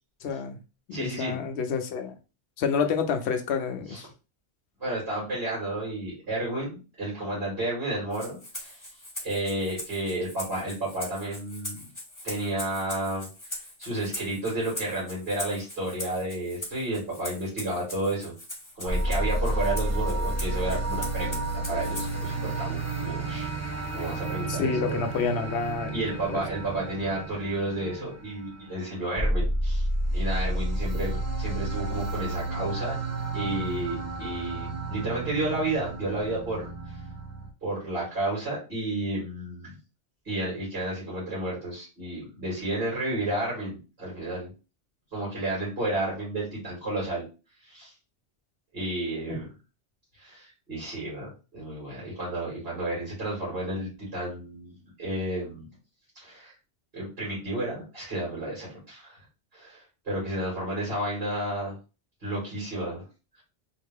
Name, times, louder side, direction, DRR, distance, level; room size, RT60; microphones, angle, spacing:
voice 1, 0.2-0.6 0.9-2.2 2.6-4.1 24.5-26.0 26.3-26.4 49.3-49.4, left 6 dB, 75° left, 0.9 m, -28 dB
voice 2, 0.9-1.4 3.9-4.0 4.8-8.8 9.2-11.8 12.2-18.3 18.8-23.5 23.9-25.0 25.9-29.9 30.1-32.9 33.3-36.7 37.6-39.8 40.2-44.5 45.1-47.3 47.6-47.9 48.7-49.5 50.2-54.7 55.0-55.7 56.2-56.5 56.9-59.2 59.5-61.7 62.2-63.0, right 1 dB, 60° right, 2.6 m, -32 dB
Rattle (instrument), 8.1-22.3, left 1 dB, 15° left, 1.2 m, -41 dB
sound 1, 18.9-37.5, right 2 dB, 20° right, 0.6 m, -31 dB
4.0 x 2.8 x 3.6 m
omnidirectional pair, 1.2 m